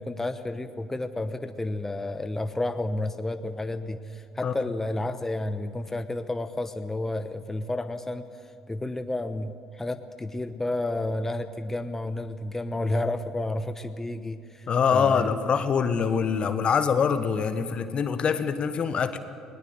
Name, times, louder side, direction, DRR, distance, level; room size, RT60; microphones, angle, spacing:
voice 1, 0.0-8.3 8.7-15.3, left 2 dB, 15° left, 9 dB, 1.0 m, -31 dB
voice 2, 14.7-19.2, left 6 dB, 45° left, 11 dB, 1.3 m, -24 dB
20.5 x 18.5 x 7.7 m, 2.5 s
hypercardioid pair, 55°, 2 cm